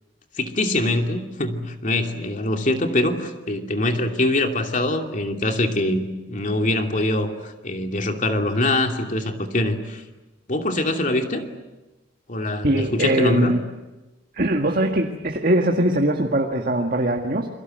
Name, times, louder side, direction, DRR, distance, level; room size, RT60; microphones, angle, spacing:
voice 1, 0.4-10.0 10.5-11.5 12.3-13.5, left 1 dB, 45° left, 4 dB, 2.7 m, -23 dB
voice 2, 12.6-13.6 14.3-17.5, right 1 dB, 50° right, 3 dB, 1.9 m, -21 dB
29.0 x 23.5 x 7.9 m, 1.1 s
head